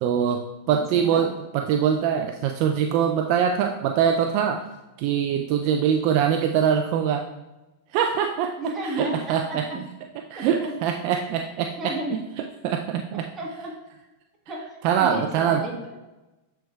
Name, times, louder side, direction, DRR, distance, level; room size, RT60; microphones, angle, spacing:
voice 1, 0.0-4.7 5.0-7.3 7.9-8.6 8.8-9.8 10.3-12.2 12.6-13.3 14.8-15.6, right 8 dB, 55° right, 4 dB, 0.4 m, -23 dB
voice 2, 0.7-1.2 8.6-9.8 10.3-10.7 11.8-12.1 13.3-13.8 14.5-14.7 15.0-16.2, right 1 dB, 25° right, -1 dB, 1.6 m, -33 dB
9.1 x 4.5 x 2.4 m, 1.0 s
hypercardioid pair, 115°, 0 cm